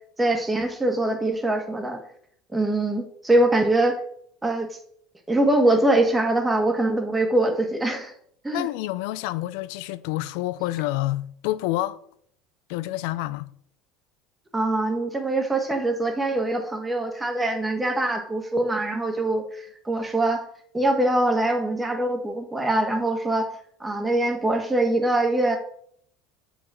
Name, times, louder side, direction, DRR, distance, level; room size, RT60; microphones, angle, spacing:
voice 1, 0.2-2.0 2.5-4.0 4.4-4.7 5.3-8.1 8.4-8.7 14.5-20.4 20.7-23.5 23.8-25.6, right 2 dB, 10° right, 1.6 m, -23 dB
voice 2, 8.5-12.0 12.7-13.5, left 16 dB, 75° left, 0.4 m, -28 dB
7.3 x 5.1 x 4.9 m
supercardioid pair, 100°, 0 cm